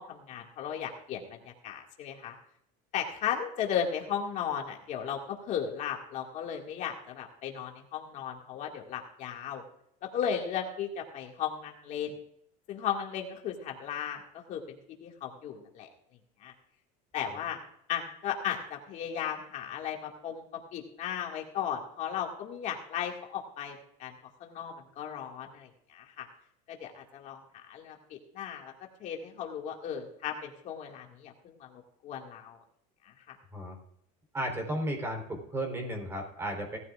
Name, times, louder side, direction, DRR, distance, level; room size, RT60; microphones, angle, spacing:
voice 1, 0.0-2.4 2.9-9.6 10.0-12.1 12.7-14.2 14.5-14.6 15.0-15.9 16.4-16.5 17.1-17.6 17.9-24.1 24.4-26.3 26.7-27.4 27.7-28.7 29.0-32.6 33.0-33.4, left 8 dB, 45° left, 1 dB, 2.0 m, -36 dB
voice 2, 34.3-36.8, right 1 dB, 15° right, 3 dB, 3.7 m, -34 dB
18.0 x 13.5 x 2.5 m, 0.72 s
cardioid pair, 140°, 17 cm